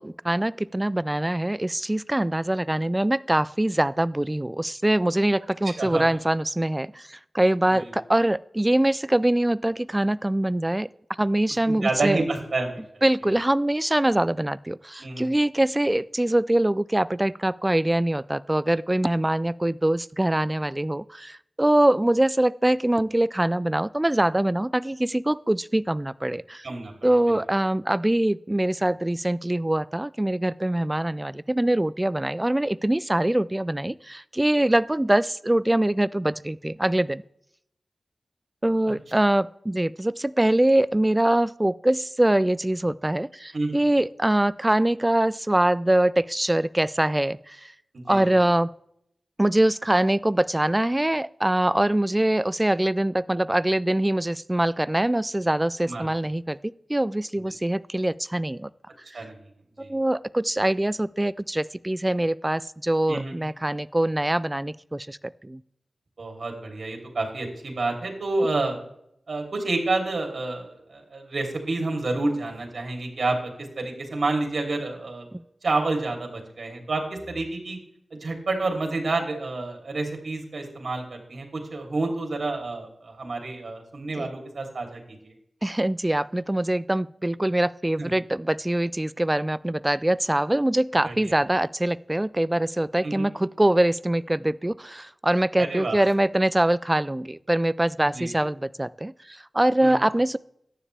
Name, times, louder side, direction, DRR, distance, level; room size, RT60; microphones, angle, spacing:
voice 1, 0.0-10.9 11.2-12.2 13.0-26.6 27.0-37.2 38.6-47.7 48.1-48.7 49.4-58.7 59.8-65.6 84.2-84.3 85.6-100.4, right 1 dB, 15° right, 19 dB, 0.4 m, -23 dB
voice 2, 11.7-13.0 15.0-15.3 26.6-26.9 27.3-27.4 43.5-43.8 47.9-48.4 55.8-56.1 57.3-57.4 59.1-59.4 59.8-59.9 63.1-63.4 66.2-68.8 69.3-75.2 75.6-77.8 78.1-85.3 88.0-88.1 91.0-91.4 93.0-93.3 95.6-96.0 98.0-98.3 99.8-100.0, right 2 dB, 65° right, 3 dB, 3.1 m, -29 dB
14.0 x 10.0 x 3.4 m, 0.74 s
wide cardioid pair, 85°, 0 cm